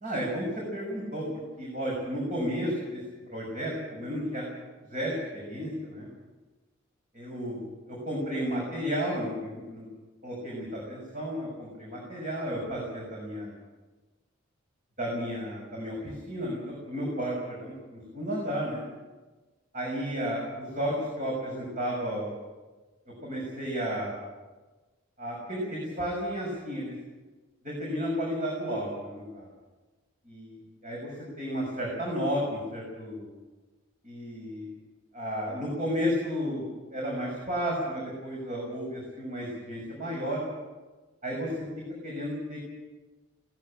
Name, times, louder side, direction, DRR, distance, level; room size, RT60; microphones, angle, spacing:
voice 1, 0.0-0.5 0.7-1.3 1.6-3.0 3.3-4.4 4.9-6.1 7.1-7.6 7.9-9.9 10.2-13.5 15.0-18.8 19.7-22.3 23.2-24.1 25.2-26.9 27.6-29.5 30.2-33.3 34.0-34.7 35.1-40.4 41.2-41.6 42.0-42.7, equal, 40° right, -2 dB, 6.4 m, -33 dB
19.0 x 16.5 x 8.7 m, 1.2 s
head